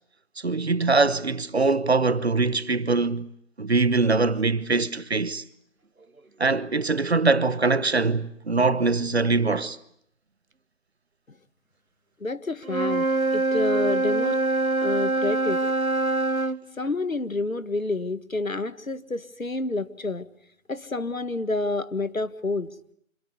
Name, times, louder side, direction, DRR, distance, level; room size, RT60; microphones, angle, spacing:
voice 1, 0.4-3.3 3.6-5.4 6.4-9.8, right 3 dB, 50° right, 1.1 m, -23 dB
voice 2, 12.2-14.4 14.8-15.6 16.8-20.3 20.7-22.7, left 2 dB, 80° left, 1.8 m, -29 dB
Wind instrument woodwind instrument, 12.6-16.6, right 2 dB, 90° right, 1.4 m, -24 dB
26.5 x 21.5 x 9.5 m
figure-of-eight pair, 165°, 41 cm